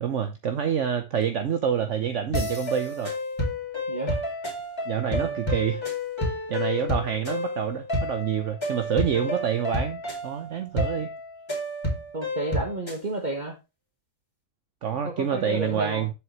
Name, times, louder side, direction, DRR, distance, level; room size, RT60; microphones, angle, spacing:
voice 1, 0.0-3.1 4.9-5.8 6.5-11.1 14.8-16.1, right 8 dB, 60° right, 1.1 m, -27 dB
sound 1, 2.3-13.0, left 1 dB, 20° left, 2.5 m, -30 dB
voice 2, 3.9-4.2 5.1-5.5 12.1-13.6 15.0-16.1, right 2 dB, 30° right, 1.5 m, -32 dB
7.7 x 6.9 x 3.1 m
omnidirectional pair, 1.5 m